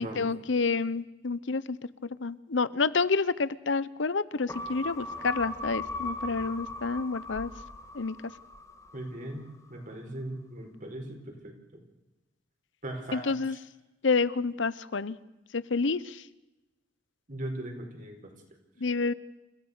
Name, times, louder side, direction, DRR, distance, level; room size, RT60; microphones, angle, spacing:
voice 1, 0.0-1.8 2.2-7.5 7.9-8.1 13.1-13.6 14.0-15.2 15.5-16.2 18.8-19.1, left 4 dB, 85° left, 17 dB, 0.8 m, -29 dB
sound 1, 4.5-9.2 9.5-9.6, left 2 dB, 15° left, 1.8 m, -38 dB
voice 2, 8.9-11.8 12.8-13.6 17.3-18.3, right 1 dB, 45° right, 3 dB, 4.8 m, -39 dB
29.0 x 15.5 x 6.8 m, 1.0 s
head